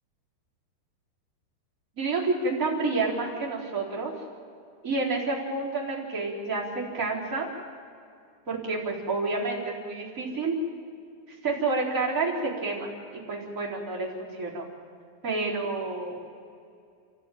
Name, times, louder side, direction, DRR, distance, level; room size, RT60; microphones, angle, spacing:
voice 1, 2.0-4.1 4.8-7.5 8.5-10.5 11.4-14.6 15.2-16.2, right 3 dB, 20° right, -5 dB, 4.0 m, -29 dB
29.5 x 13.5 x 9.3 m, 2.4 s
omnidirectional pair, 5.2 m